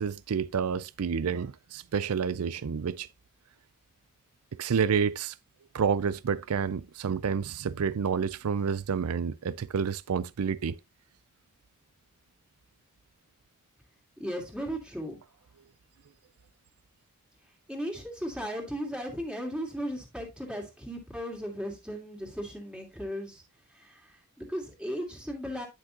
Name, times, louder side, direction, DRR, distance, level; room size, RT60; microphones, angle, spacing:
voice 1, 0.0-3.1 4.6-5.3 5.7-10.8, right 6 dB, 85° right, 0.4 m, -29 dB
voice 2, 14.2-15.2 17.7-23.4 23.7-25.7, equal, 5° right, 2.6 m, -36 dB
10.5 x 6.1 x 2.8 m
head